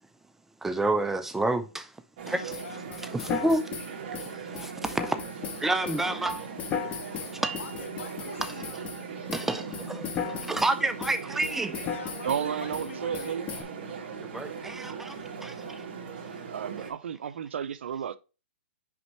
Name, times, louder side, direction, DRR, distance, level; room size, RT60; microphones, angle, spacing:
voice 1, 0.6-1.9 2.3-2.5 3.1-3.6 4.2-6.5 6.8-7.6 9.3-11.7 14.2-15.8, right 2 dB, 5° right, 0.4 m, -30 dB
voice 2, 2.2-3.0 7.6-8.7 11.8-13.4, left 5 dB, 75° left, 1.7 m, -44 dB
sound 1, 2.2-16.9, right 5 dB, 45° right, 2.1 m, -39 dB
sound 2, 2.5-9.0 9.3-10.7 11.0-12.4 12.7-12.9 13.1-13.6, left 8 dB, 20° left, 0.9 m, -36 dB
voice 3, 12.2-13.5 16.5-18.2, right 8 dB, 70° right, 0.6 m, -32 dB
6.0 x 5.3 x 3.0 m
hypercardioid pair, 150°, 7 cm